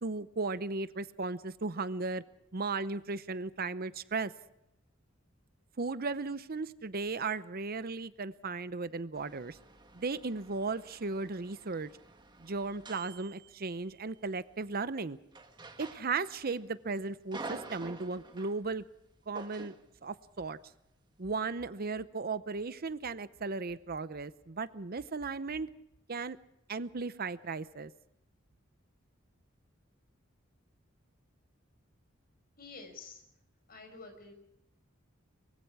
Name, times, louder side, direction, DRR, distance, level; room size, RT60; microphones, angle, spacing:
voice 1, 0.0-2.2 2.5-4.3 5.8-9.6 9.9-11.9 12.4-15.2 15.8-18.8 19.3-19.7 20.0-20.6 21.2-25.7 26.1-26.4 26.7-27.9, right 4 dB, 50° right, 14 dB, 0.8 m, -36 dB
sound 1, 9.1-14.1 15.3-16.6 16.9-18.6 19.3-19.9, right 3 dB, 20° right, 1.7 m, -48 dB
voice 2, 32.6-33.2 33.7-34.3, left 4 dB, 50° left, 5 dB, 5.5 m, -49 dB
24.0 x 23.5 x 4.9 m, 0.82 s
head